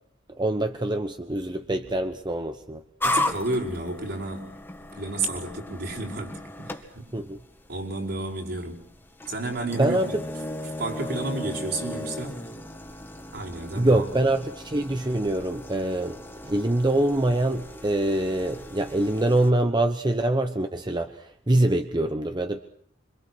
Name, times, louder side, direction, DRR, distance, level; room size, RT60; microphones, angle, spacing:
voice 1, 0.4-2.8 7.1-7.4 9.8-10.2 13.7-16.2 16.4-22.6, right 1 dB, 25° right, 7 dB, 1.0 m, -24 dB
sound 1, 3.0-19.5, left 1 dB, 10° left, 2.1 m, -36 dB
voice 2, 3.0-4.6 4.9-7.1 7.7-8.8 9.3-10.2 10.8-12.4 13.3-14.2, right 2 dB, 55° right, 1 dB, 5.6 m, -31 dB
26.5 x 26.0 x 6.3 m, 0.65 s
head